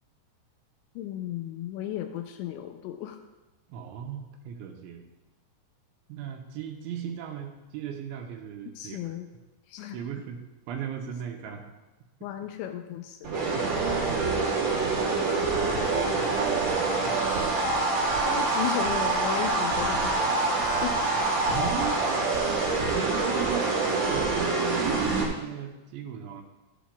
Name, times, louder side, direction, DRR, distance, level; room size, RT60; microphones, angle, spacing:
voice 1, 1.0-3.2 8.8-9.3 9.7-10.0 12.2-13.5 18.2-21.1, left 11 dB, 85° left, 6 dB, 2.7 m, -35 dB
voice 2, 3.7-5.0 6.1-9.1 9.9-10.4 10.7-11.6 15.0-15.1 15.5-17.2 21.5-22.0 22.9-26.4, right 8 dB, 80° right, 3 dB, 3.0 m, -37 dB
sound 1, 13.2-25.2, right 3 dB, 65° right, 1.5 m, -26 dB
12.5 x 10.0 x 2.3 m, 1.1 s
omnidirectional pair, 5.5 m